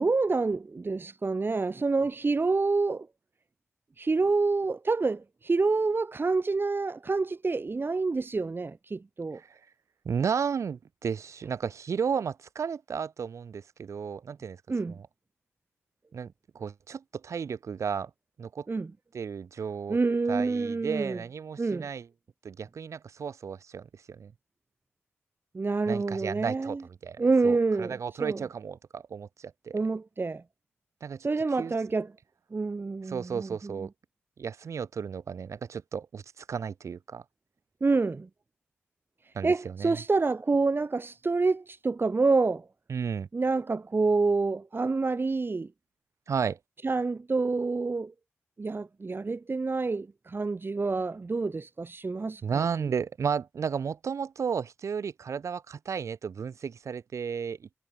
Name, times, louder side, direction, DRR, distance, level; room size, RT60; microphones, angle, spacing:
voice 1, 0.0-3.1 4.0-9.4 14.7-15.0 18.7-18.9 19.9-21.2 21.6-21.9 25.5-26.8 27.2-28.4 29.7-30.4 31.2-32.1 32.5-33.7 37.8-38.3 39.4-42.7 43.3-45.7 46.8-48.1 48.6-52.6, right 3 dB, 45° right, 3.5 m, -27 dB
voice 2, 10.0-14.6 14.9-15.1 16.1-18.1 18.4-18.7 19.1-20.0 20.3-22.1 22.4-24.3 25.9-29.8 31.0-31.7 33.0-33.9 34.4-37.2 39.3-40.0 42.9-43.3 46.3-46.6 52.4-57.7, right 6 dB, 75° right, 7.4 m, -33 dB
cardioid pair, 45°, 5 cm